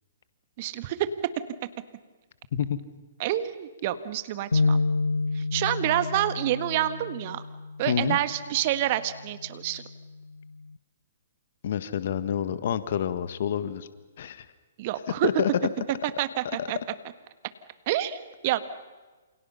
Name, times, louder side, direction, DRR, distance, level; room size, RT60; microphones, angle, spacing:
voice 1, 0.6-1.0 3.2-4.8 5.4-7.4 7.8-9.8 14.8-15.3 16.2-16.8 17.9-18.6, right 13 dB, 40° right, 12 dB, 1.6 m, -28 dB
sound 1, 4.5-10.8, left 3 dB, 75° left, 0.8 m, -30 dB
voice 2, 7.9-8.2 11.6-13.9 14.2-14.5 15.2-15.5 16.6-16.7, left 9 dB, 50° left, 13 dB, 1.6 m, -28 dB
28.5 x 28.0 x 5.7 m, 1.3 s
figure-of-eight pair, 120°, 0 cm